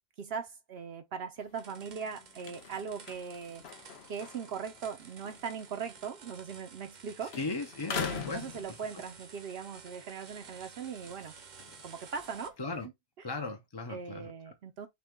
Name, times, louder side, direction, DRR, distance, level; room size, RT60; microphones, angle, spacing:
voice 1, 0.2-3.6 4.1-7.4 7.9-11.3 11.8-12.6 12.8-12.9 13.2-13.3 13.9-14.9, right 6 dB, 75° right, 0.9 m, -40 dB
sound 1, 1.4-7.0 7.3-9.3 9.8-12.9, left 7 dB, 75° left, 1.0 m, -44 dB
sound 2, 1.5-12.5, right 5 dB, 50° right, 0.8 m, -53 dB
voice 2, 7.4-8.4 12.6-12.9 13.2-14.3, left 3 dB, 30° left, 0.6 m, -37 dB
5.8 x 2.2 x 3.6 m
omnidirectional pair, 1.1 m